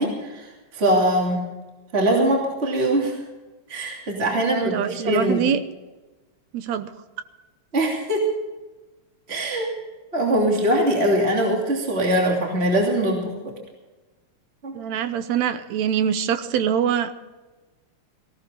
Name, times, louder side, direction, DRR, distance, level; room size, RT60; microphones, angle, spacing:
voice 1, 0.0-1.4 1.9-3.2 3.7-5.4 7.7-8.2 9.3-9.7 10.1-13.5 14.6-14.7, right 1 dB, 20° right, -1 dB, 3.0 m, -22 dB
voice 2, 4.3-5.6 6.5-6.9 14.7-17.1, right 8 dB, 75° right, 11 dB, 2.1 m, -24 dB
18.5 x 17.0 x 3.9 m, 1.1 s
omnidirectional pair, 3.3 m